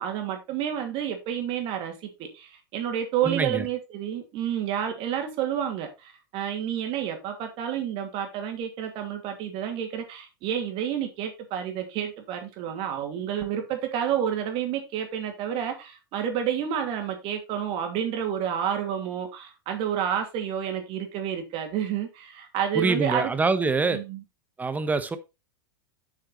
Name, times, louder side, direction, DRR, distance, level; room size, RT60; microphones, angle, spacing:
voice 1, 0.0-23.3 23.9-24.2, right 9 dB, 45° right, 2.7 m, -30 dB
voice 2, 3.2-3.6 22.7-24.0 24.6-25.2, right 4 dB, 15° right, 1.2 m, -25 dB
7.2 x 6.4 x 4.0 m
hypercardioid pair, 110°, 12 cm